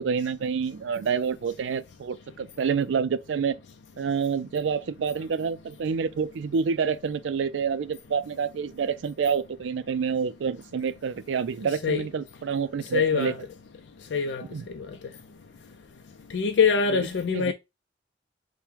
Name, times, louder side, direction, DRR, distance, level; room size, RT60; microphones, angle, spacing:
voice 1, 0.0-3.6 4.0-13.3 14.5-14.6 16.9-17.5, right 6 dB, 80° right, 0.4 m, -28 dB
voice 2, 12.9-13.4 14.1-14.4 14.7-14.9 16.3-17.5, left 5 dB, 75° left, 0.4 m, -23 dB
4.5 x 2.1 x 3.5 m
head